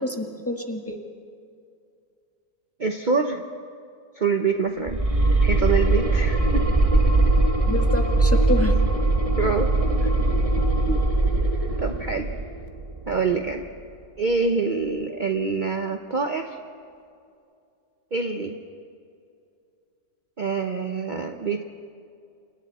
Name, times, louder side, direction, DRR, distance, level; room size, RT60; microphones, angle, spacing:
voice 1, 0.0-1.0 7.7-8.7, left 1 dB, 5° left, 2 dB, 1.6 m, -28 dB
voice 2, 2.8-3.4 4.2-5.0 5.4-6.7 9.4-10.1 10.3-10.4 10.9-11.0 11.8-12.3 13.1-13.7 14.2-16.5 18.1-18.6 20.4-21.6, right 4 dB, 45° right, 5 dB, 0.6 m, -26 dB
sound 1, 4.9-13.8, right 2 dB, 20° right, 1.1 m, -21 dB
29.0 x 28.5 x 4.2 m, 2.4 s
omnidirectional pair, 2.1 m